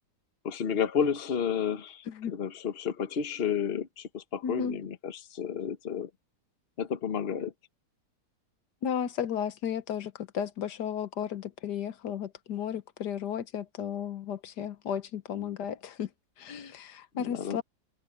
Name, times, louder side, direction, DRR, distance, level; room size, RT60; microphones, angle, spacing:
voice 1, 0.4-6.1 6.8-7.5 17.2-17.6, left 7 dB, 40° left, 1.2 m, -31 dB
voice 2, 4.4-4.8 8.8-16.1 16.4-17.6, left 8 dB, 85° left, 1.6 m, -34 dB
omnidirectional pair, 1.7 m